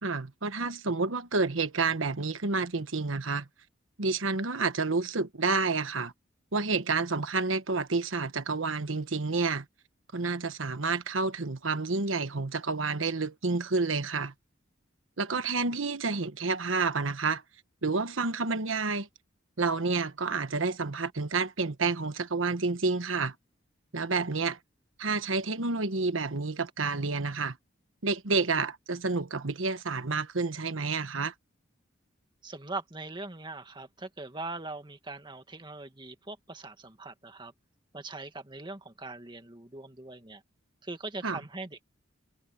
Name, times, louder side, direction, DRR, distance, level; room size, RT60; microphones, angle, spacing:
voice 1, 0.0-3.5 4.0-6.1 6.5-9.6 10.1-14.3 15.2-17.4 17.8-19.1 19.6-23.3 23.9-24.6 25.0-27.6 28.0-31.3 41.2-41.4, right 4 dB, 90° right, 1.3 m, -29 dB
voice 2, 32.4-37.5 37.9-40.4 40.8-41.8, right 3 dB, 25° right, 2.0 m, -41 dB
head